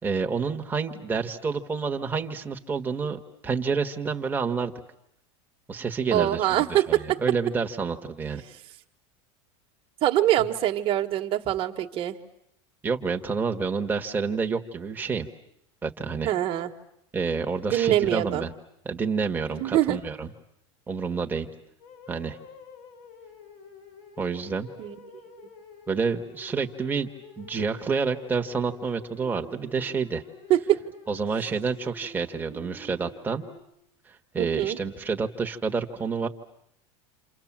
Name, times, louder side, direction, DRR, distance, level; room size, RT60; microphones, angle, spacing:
voice 1, 0.0-4.7 5.7-8.4 12.8-15.3 15.8-16.3 17.1-18.5 18.8-20.3 20.9-21.5 22.1-22.4 24.2-24.7 25.9-27.1 27.4-30.2 31.1-33.4 34.3-36.3, right 5 dB, 10° right, 3 dB, 1.6 m, -28 dB
voice 2, 6.1-7.2 10.0-12.2 16.2-16.7 17.7-18.4 19.5-20.0 24.8-24.9 30.5-30.9 34.4-34.8, right 13 dB, 35° right, 4 dB, 1.7 m, -24 dB
sound 1, 21.8-33.6, left 3 dB, 65° left, 5.4 m, -48 dB
28.5 x 28.0 x 7.5 m, 0.77 s
supercardioid pair, 150°, 15 cm